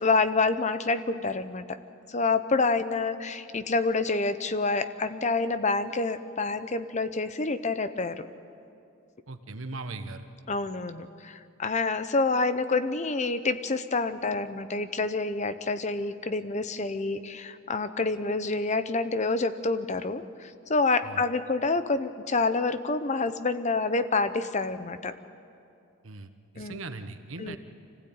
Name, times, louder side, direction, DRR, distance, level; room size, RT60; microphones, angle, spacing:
voice 1, 0.0-1.8 2.1-8.3 10.5-25.1 26.6-26.8 27.4-27.6, left 3 dB, 35° left, 11 dB, 0.8 m, -27 dB
voice 2, 9.3-10.3 21.0-21.2 26.0-27.6, right 2 dB, 80° right, 8 dB, 1.3 m, -39 dB
25.5 x 16.0 x 8.8 m, 2.5 s
head